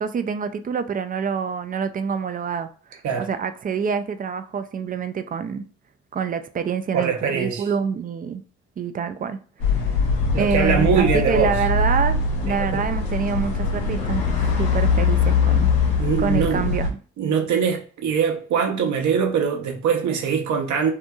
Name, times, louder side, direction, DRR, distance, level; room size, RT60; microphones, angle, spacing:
voice 1, 0.0-5.6 6.1-8.4 8.8-9.4 9.7-9.8 10.4-15.7 16.2-17.0, right 6 dB, 25° right, 0.3 m, -26 dB
voice 2, 6.9-7.7 10.3-11.6 12.5-12.8 16.0-16.7 17.2-20.9, right 6 dB, 60° right, 0.8 m, -22 dB
sound 1, 9.6-16.9, left 4 dB, 80° left, 0.7 m, -22 dB
2.7 x 2.6 x 2.2 m
hypercardioid pair, 45°, 33 cm